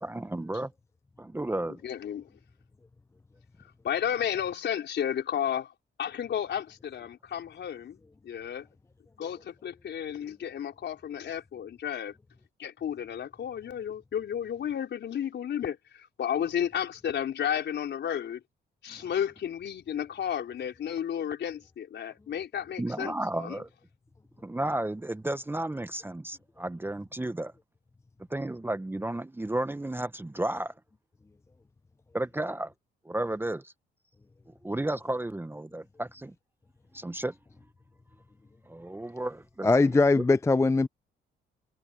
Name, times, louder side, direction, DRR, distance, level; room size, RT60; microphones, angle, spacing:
voice 1, 0.0-0.7 1.2-1.8 18.9-19.0 22.8-23.7 24.4-27.5 28.3-30.7 32.1-32.7 33.0-33.7 34.6-36.3 36.9-37.4 38.7-40.2, right 1 dB, 10° right, 0.9 m, -33 dB
voice 2, 1.8-2.3 3.8-5.7 6.0-8.0 8.2-8.7 9.2-12.1 12.6-18.4 18.8-23.6, left 9 dB, 65° left, 4.7 m, -32 dB
voice 3, 39.6-40.9, left 3 dB, 15° left, 0.5 m, -21 dB
cardioid pair, 90°, 20 cm